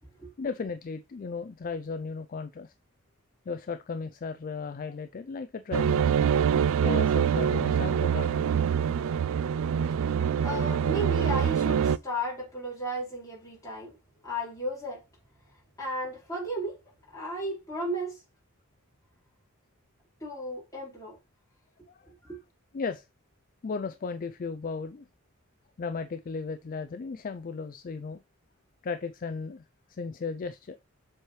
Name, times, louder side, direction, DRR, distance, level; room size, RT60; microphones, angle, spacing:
voice 1, 0.4-2.7 3.5-6.0 6.8-8.5 9.4-9.6 21.9-22.1 22.7-23.1 23.6-25.1 25.8-28.2 28.8-29.6 29.9-30.8, left 4 dB, 40° left, 0.4 m, -35 dB
sound 1, 5.7-12.0, right 8 dB, 65° right, 0.3 m, -25 dB
voice 2, 10.4-14.0 14.2-15.0 15.8-16.8 17.1-18.2 20.2-21.2 22.1-22.4, equal, 15° left, 4.3 m, -34 dB
7.4 x 4.7 x 3.1 m
head